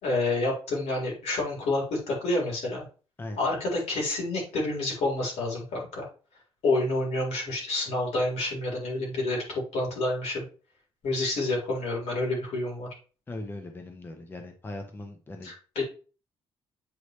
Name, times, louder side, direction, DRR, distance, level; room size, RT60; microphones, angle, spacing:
voice 1, 0.0-2.8 3.4-6.1 6.6-10.4 11.0-12.9 15.4-15.8, left 2 dB, 80° left, -2 dB, 4.0 m, -28 dB
voice 2, 13.3-15.5, left 2 dB, 20° left, 4 dB, 0.9 m, -39 dB
8.1 x 4.9 x 3.2 m, 0.36 s
cardioid pair, 155°, 11 cm